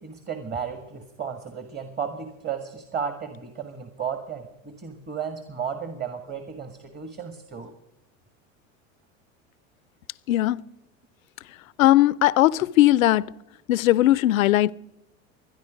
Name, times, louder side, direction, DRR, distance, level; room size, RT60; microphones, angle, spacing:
voice 1, 0.0-7.7, right 7 dB, 25° right, 1.7 m, -34 dB
voice 2, 10.3-10.6 11.8-13.3 13.7-14.7, left 15 dB, 85° left, 0.5 m, -18 dB
26.0 x 10.5 x 5.2 m
hypercardioid pair, 90°, 40 cm